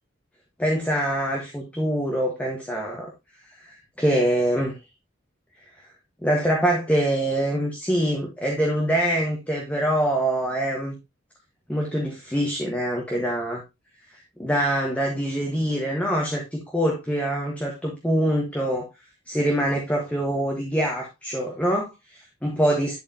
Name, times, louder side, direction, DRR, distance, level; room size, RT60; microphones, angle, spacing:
voice 1, 0.6-3.1 3.7-4.8 6.2-11.0 11.7-13.6 14.4-18.9 19.3-23.0, right 1 dB, 10° left, 0 dB, 1.3 m, -24 dB
11.0 x 4.6 x 2.8 m, 0.23 s
head